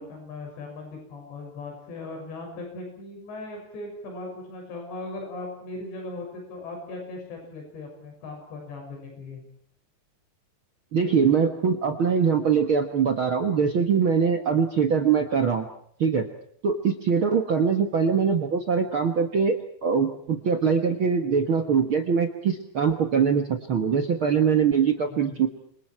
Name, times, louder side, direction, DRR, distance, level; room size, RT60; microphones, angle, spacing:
voice 1, 0.0-9.4 25.1-25.4, left 2 dB, 85° left, 2 dB, 8.6 m, -38 dB
voice 2, 10.9-15.7 16.0-16.3 16.6-25.5, right 6 dB, 75° right, 5 dB, 1.2 m, -23 dB
30.0 x 26.5 x 4.6 m, 0.64 s
omnidirectional pair, 4.9 m